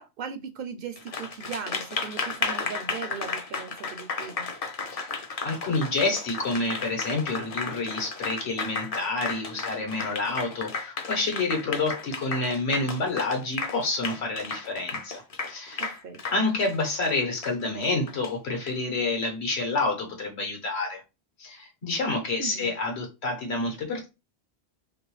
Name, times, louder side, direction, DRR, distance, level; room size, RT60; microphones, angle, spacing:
voice 1, 0.0-4.5 15.8-16.2 22.4-22.7, right 6 dB, 65° right, 0.7 m, -38 dB
Applause, 1.0-18.7, left 4 dB, 45° left, 0.5 m, -34 dB
voice 2, 4.9-15.2 15.5-16.0 16.3-21.0 21.4-24.1, left 3 dB, 75° left, 1.4 m, -28 dB
3.0 x 3.0 x 3.1 m
omnidirectional pair, 1.1 m